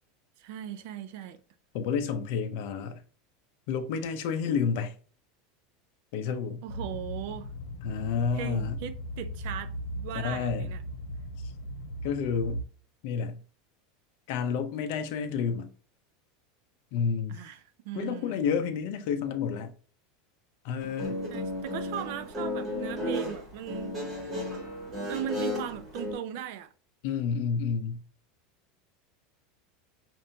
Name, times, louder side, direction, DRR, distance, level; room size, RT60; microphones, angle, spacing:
voice 1, 0.4-1.4 6.6-7.5 8.3-10.8 17.3-18.4 21.3-24.5 25.1-26.7, right 10 dB, 55° right, 0.4 m, -38 dB
voice 2, 1.7-3.0 3.7-4.9 6.1-6.6 7.8-8.8 10.1-10.7 12.0-12.6 13.0-13.4 14.3-15.7 16.9-17.4 17.9-19.7 20.6-21.1 27.0-28.0, left 6 dB, 55° left, 0.6 m, -30 dB
sound 1, 6.7-12.6, equal, 75° left, 1.1 m, -37 dB
Guitar, 20.8-26.1, left 1 dB, 15° right, 1.5 m, -34 dB
5.4 x 2.6 x 2.7 m
supercardioid pair, 170°, 0 cm